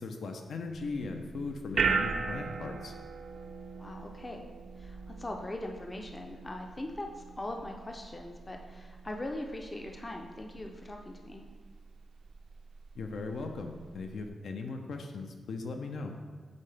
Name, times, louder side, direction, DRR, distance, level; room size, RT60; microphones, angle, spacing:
voice 1, 0.0-2.9 12.9-16.1, left 3 dB, 75° left, 4 dB, 0.6 m, -38 dB
sound 1, 0.7-14.3, right 5 dB, 55° right, 0.4 m, -39 dB
voice 2, 3.8-4.5 4.8-11.4, left 1 dB, 20° left, 2 dB, 0.5 m, -41 dB
8.2 x 3.8 x 3.3 m, 1.5 s
wide cardioid pair, 175°, 0 cm